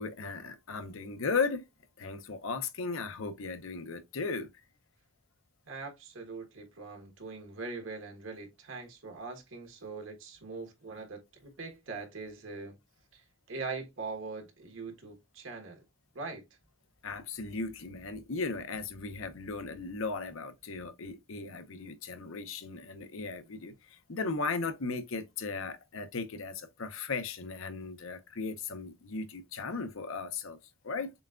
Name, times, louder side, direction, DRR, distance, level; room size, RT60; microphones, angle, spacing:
voice 1, 0.0-1.6 2.0-4.5 17.0-30.6 30.8-31.1, left 4 dB, 80° left, 0.7 m, -36 dB
voice 2, 5.7-12.7 13.1-15.8 16.1-16.4, right 4 dB, 75° right, 1.3 m, -42 dB
6.9 x 2.3 x 2.4 m
head